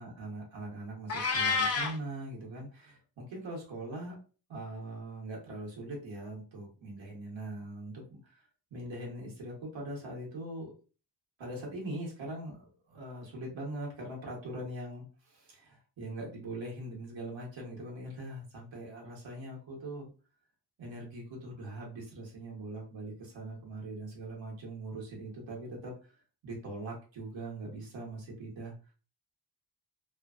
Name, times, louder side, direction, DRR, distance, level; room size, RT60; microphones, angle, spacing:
voice 1, 0.0-4.2 4.5-8.4 8.7-10.7 11.4-20.1 20.8-26.1 26.4-28.7, right 1 dB, 80° right, -2 dB, 1.3 m, -41 dB
Meow, 1.1-2.0, left 4 dB, 35° left, 0.6 m, -28 dB
3.0 x 2.3 x 2.4 m, 0.35 s
cardioid pair, 75°, 45 cm